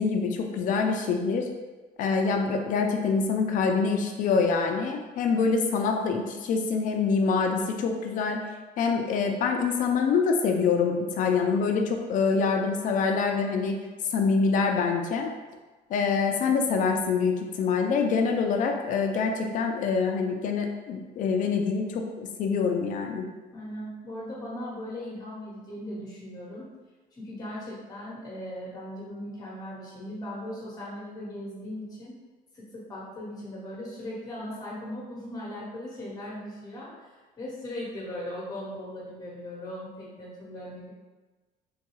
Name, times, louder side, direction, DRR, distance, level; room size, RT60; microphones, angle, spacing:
voice 1, 0.0-1.5 2.0-8.4 8.8-13.8 14.1-15.3 15.9-23.3, left 5 dB, 50° left, 3 dB, 0.4 m, -25 dB
voice 2, 23.5-26.6 27.1-32.1 32.5-40.9, left 1 dB, 20° left, -6 dB, 1.1 m, -38 dB
3.8 x 2.2 x 3.0 m, 1.2 s
cardioid pair, 155°, 17 cm